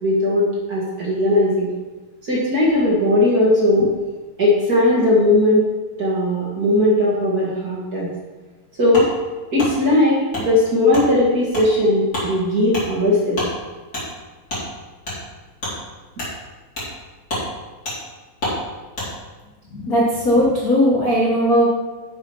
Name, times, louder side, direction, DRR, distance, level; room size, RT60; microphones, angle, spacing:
voice 1, 0.0-1.7 2.3-3.9 4.4-5.6 6.0-8.1 8.8-9.1 9.5-13.4, left 1 dB, 35° right, -5 dB, 1.7 m, -18 dB
Wood, 8.9-9.1 9.6-9.7 10.3-10.5 10.9-11.1 11.5-11.7 12.1-12.3 12.7-12.9 13.3-13.5 13.9-14.0 14.5-14.6 15.0-15.2 15.6-15.7 16.1-16.3 16.7-16.9 17.2-17.4 17.8-18.0 18.4-18.6 18.9-19.1, left 1 dB, 30° left, 3.9 m, -27 dB
voice 2, 19.7-21.7, equal, 65° left, -4 dB, 0.8 m, -17 dB
7.7 x 7.1 x 5.6 m, 1.2 s
omnidirectional pair, 3.9 m